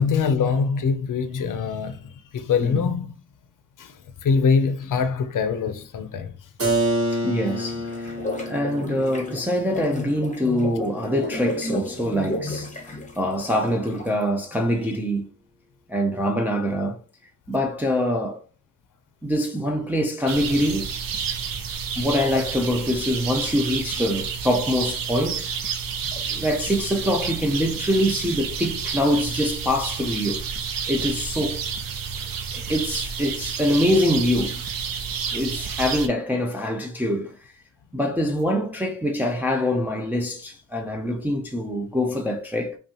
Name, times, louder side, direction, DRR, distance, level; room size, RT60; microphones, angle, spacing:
voice 1, 0.0-3.1 3.8-6.3, left 5 dB, 70° left, 0.6 m, -23 dB
Keyboard (musical), 6.6-12.2, right 1 dB, 45° right, 1.3 m, -29 dB
voice 2, 7.1-8.1 8.4-15.3 15.9-17.0 17.5-18.4 19.2-20.9 22.0-25.5 26.1-30.4 30.9-31.6 32.5-34.6 35.3-37.5 37.9-42.8, equal, 5° right, 0.5 m, -24 dB
sound 1, 7.5-14.2, left 1 dB, 20° left, 0.8 m, -33 dB
sound 2, 20.3-36.1, right 6 dB, 85° right, 0.7 m, -30 dB
5.3 x 2.4 x 2.8 m
wide cardioid pair, 115°, 33 cm